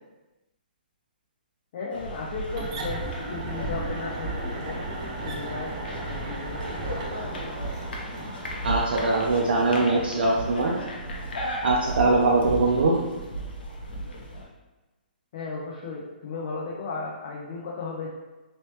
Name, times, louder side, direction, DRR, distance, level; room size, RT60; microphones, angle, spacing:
voice 1, 1.7-4.8 5.2-7.1 15.3-18.1, left 4 dB, 45° left, -3 dB, 0.5 m, -35 dB
sound 1, 1.9-14.5, right 1 dB, 75° left, 0.7 m, -35 dB
sound 2, 2.5-8.9, right 2 dB, 35° right, 0.5 m, -35 dB
voice 2, 8.6-10.7 11.6-12.9, right 3 dB, 80° right, -3 dB, 0.5 m, -22 dB
3.1 x 2.9 x 3.0 m, 1.2 s
hypercardioid pair, 160°, 5 cm